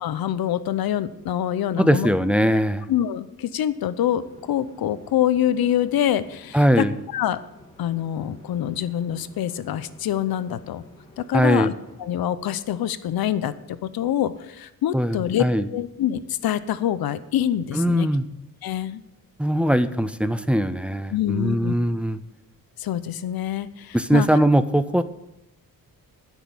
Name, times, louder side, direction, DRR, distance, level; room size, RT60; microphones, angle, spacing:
voice 1, 0.0-2.1 2.9-6.9 7.1-7.4 7.8-10.8 11.2-11.7 12.0-15.4 15.7-18.1 18.6-19.0 21.1-21.7 22.8-24.3, left 11 dB, 90° left, 14 dB, 0.7 m, -25 dB
voice 2, 1.8-2.9 6.5-6.9 11.3-11.7 14.9-15.7 17.7-18.2 19.4-22.2 23.9-25.0, right 1 dB, 5° right, 11 dB, 0.4 m, -20 dB
sound 1, 4.1-12.1, left 1 dB, 15° left, 2.9 m, -51 dB
12.0 x 6.2 x 7.2 m, 0.88 s
wide cardioid pair, 155°, 35 cm